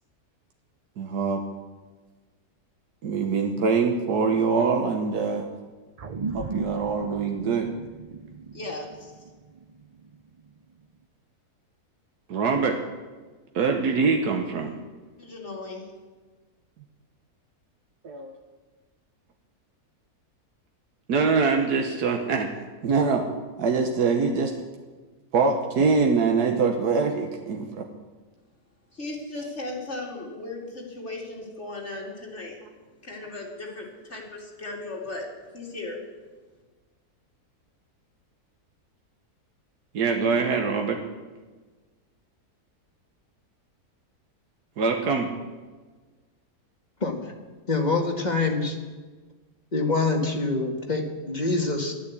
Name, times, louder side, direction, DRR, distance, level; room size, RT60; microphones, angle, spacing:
voice 1, 1.0-1.4 3.0-5.5 6.3-7.7 12.3-12.8 13.5-14.8 18.0-18.3 21.1-22.5 22.8-23.3 23.6-24.5 25.3-27.9 39.9-41.0 44.8-45.3, right 5 dB, 80° right, 3 dB, 1.7 m, -24 dB
sound 1, 6.0-10.7, right 4 dB, 55° right, 0.4 m, -37 dB
voice 2, 8.5-9.2 15.2-15.9 28.9-32.6 33.0-35.3 35.5-36.0, left 2 dB, 45° left, -2 dB, 3.1 m, -36 dB
voice 3, 47.0-47.3 47.7-48.8 49.7-51.9, left 3 dB, 30° left, 2 dB, 1.7 m, -25 dB
13.0 x 12.0 x 8.2 m, 1.4 s
omnidirectional pair, 1.6 m